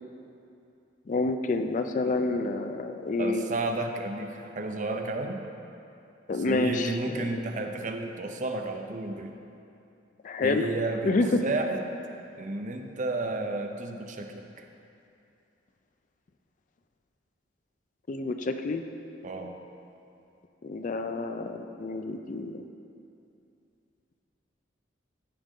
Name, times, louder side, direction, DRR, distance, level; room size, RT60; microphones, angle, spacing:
voice 1, 1.1-3.5 6.3-7.4 10.2-10.7 11.0-11.4 18.1-18.8 20.6-22.6, left 3 dB, 45° left, 7 dB, 0.4 m, -28 dB
voice 2, 3.2-5.4 6.3-9.3 10.4-11.1 11.4-11.9 12.4-14.6 19.2-19.5, right 2 dB, 45° right, 4 dB, 0.6 m, -32 dB
14.0 x 5.1 x 3.7 m, 2.7 s
head